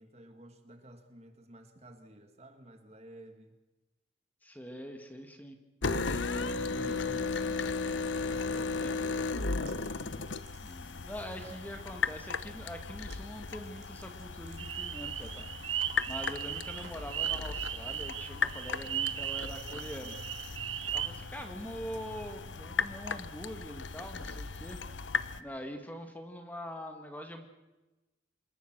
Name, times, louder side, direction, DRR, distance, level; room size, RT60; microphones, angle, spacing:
voice 1, 0.0-3.6 6.1-7.8 8.2-9.9, right 1 dB, 35° right, 6 dB, 2.1 m, -51 dB
voice 2, 4.4-5.6 8.8-9.1 10.6-20.2 20.9-24.8 25.4-27.5, equal, 10° left, 5 dB, 2.0 m, -44 dB
sound 1, 5.8-25.4, left 4 dB, 80° left, 1.1 m, -36 dB
sound 2, 8.4-8.7 9.1-11.0 11.3-11.7 13.0-13.2 13.5-17.2, right 5 dB, 70° right, 4.3 m, -58 dB
sound 3, 14.6-21.1, right 11 dB, 85° right, 1.3 m, -37 dB
26.5 x 21.5 x 6.2 m, 1.1 s
head